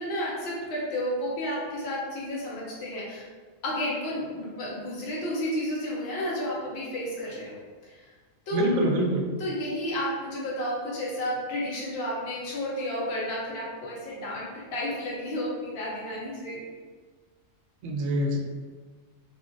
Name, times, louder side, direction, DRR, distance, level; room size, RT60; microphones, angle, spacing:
voice 1, 0.0-3.2 3.6-7.5 7.8-8.0 8.5-8.6 9.4-16.6, equal, 55° left, -5 dB, 0.9 m, -32 dB
voice 2, 8.5-9.3 17.8-18.4, right 1 dB, 80° right, 0 dB, 1.0 m, -25 dB
2.8 x 2.6 x 2.4 m, 1.4 s
omnidirectional pair, 1.4 m